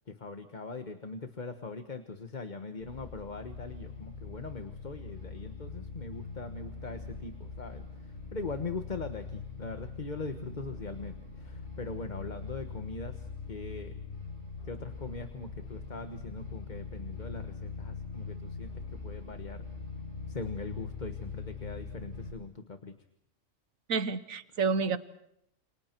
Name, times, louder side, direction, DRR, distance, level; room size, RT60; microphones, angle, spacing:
voice 1, 0.1-14.0 14.7-19.7 20.3-22.9, left 3 dB, 35° left, 8 dB, 1.4 m, -41 dB
sound 1, 2.8-22.3, left 4 dB, 55° left, 7.7 m, -42 dB
voice 2, 23.9-25.0, right 5 dB, 80° right, 14 dB, 1.5 m, -29 dB
29.5 x 28.5 x 4.6 m, 0.77 s
omnidirectional pair, 1.4 m